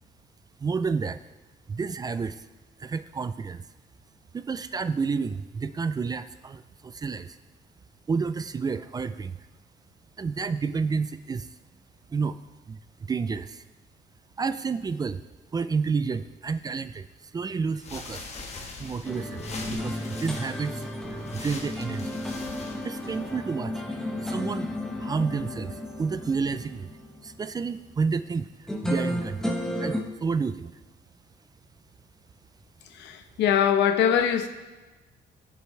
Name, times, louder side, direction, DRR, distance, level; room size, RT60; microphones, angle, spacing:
voice 1, 0.6-1.2 1.7-2.4 2.8-3.6 4.3-7.4 8.1-9.3 10.2-11.5 12.1-12.4 12.7-13.6 14.4-15.2 15.5-17.0 17.3-18.3 18.8-19.4 19.7-20.9 21.1-22.2 22.8-23.7 24.2-24.7 25.0-26.9 27.2-30.7, right 5 dB, 20° right, 0.4 m, -30 dB
sound 1, 17.7-23.4, left 3 dB, 40° left, 1.4 m, -42 dB
sound 2, 19.0-27.7 28.7-30.0, left 1 dB, 5° left, 1.1 m, -33 dB
voice 2, 33.0-34.5, left 9 dB, 85° left, 0.9 m, -22 dB
17.0 x 6.8 x 3.2 m
cardioid pair, 125°, 18 cm